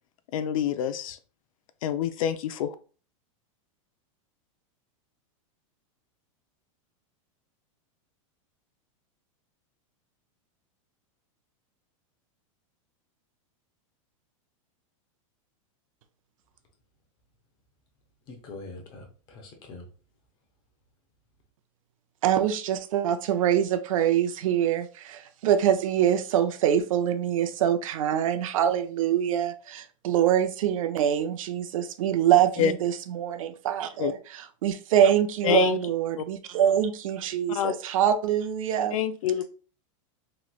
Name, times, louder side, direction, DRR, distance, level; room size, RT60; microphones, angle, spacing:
voice 1, 0.3-1.2 1.8-2.7 32.6-32.7 34.0-34.1 35.4-35.8 36.2-36.3 37.5-37.7 38.9-39.4, left 9 dB, 75° left, 0.4 m, -26 dB
voice 2, 18.3-19.9, left 3 dB, 25° left, 0.7 m, -43 dB
voice 3, 22.2-34.2 34.6-39.0, right 10 dB, 75° right, 0.5 m, -24 dB
3.0 x 3.0 x 2.3 m
supercardioid pair, 165°, 17 cm